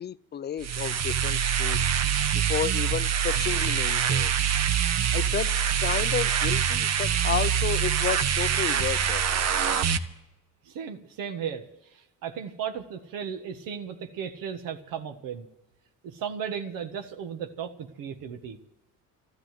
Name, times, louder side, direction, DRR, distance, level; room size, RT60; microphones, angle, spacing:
voice 1, 0.0-1.8 2.3-4.4 5.1-9.2, left 9 dB, 30° left, 0.5 m, -32 dB
sound 1, 0.6-10.0, right 8 dB, 50° right, 1.0 m, -25 dB
voice 2, 10.6-15.5 16.0-18.6, right 7 dB, 80° right, 1.6 m, -35 dB
14.0 x 12.5 x 7.7 m
cardioid pair, 125°, 33 cm